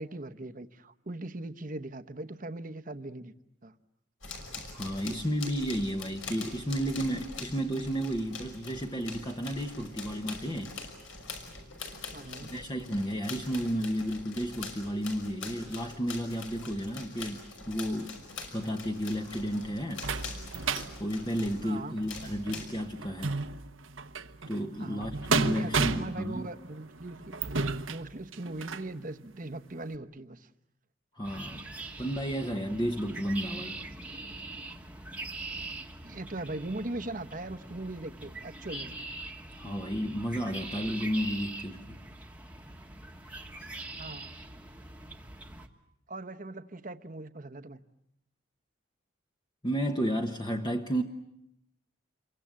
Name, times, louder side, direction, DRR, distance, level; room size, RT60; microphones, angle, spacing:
voice 1, 0.0-3.3 3.6-3.7 12.1-12.5 21.6-22.0 24.8-27.4 27.9-30.5 36.0-38.9 44.0-44.3 46.1-47.8, right 2 dB, 40° right, 1.0 m, -40 dB
sound 1, 4.2-21.7 22.0-22.7, left 3 dB, 70° left, 5.8 m, -44 dB
voice 2, 4.7-10.8 12.5-18.2 18.5-20.1 21.0-23.3 24.5-26.5 31.1-31.6 32.0-33.8 39.6-42.0 49.6-51.0, equal, 20° left, 1.1 m, -32 dB
sound 2, 19.1-28.9 29.5-29.6 29.9-30.0, right 4 dB, 75° right, 1.1 m, -34 dB
sound 3, 31.2-45.7, right 2 dB, 5° right, 1.4 m, -43 dB
28.0 x 24.0 x 7.6 m
head